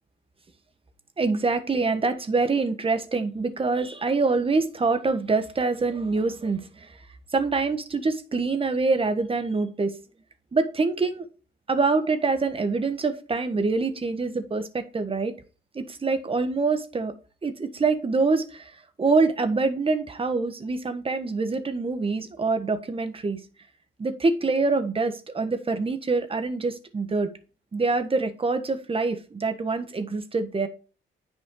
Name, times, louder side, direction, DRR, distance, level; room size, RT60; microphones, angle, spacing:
voice 1, 1.2-6.9 7.3-10.0 10.5-11.2 11.7-15.3 15.7-17.1 17.4-18.7 19.0-23.4 24.0-27.3 27.7-30.7, right 3 dB, 30° right, 9 dB, 1.4 m, -25 dB
9.6 x 6.1 x 3.8 m, 0.35 s
cardioid pair, 90°, 20 cm